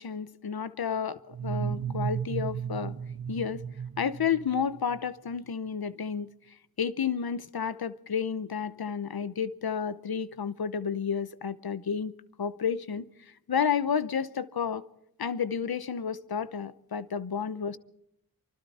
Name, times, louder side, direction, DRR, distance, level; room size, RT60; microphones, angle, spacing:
voice 1, 0.0-2.9 3.3-3.6 4.0-6.3 6.8-12.1 12.4-13.1 13.5-14.8 15.2-17.8, left 7 dB, 85° left, 0.9 m, -31 dB
sound 1, 1.3-5.0, right 8 dB, 80° right, 1.0 m, -34 dB
25.0 x 25.0 x 4.3 m
wide cardioid pair, 85°, 36 cm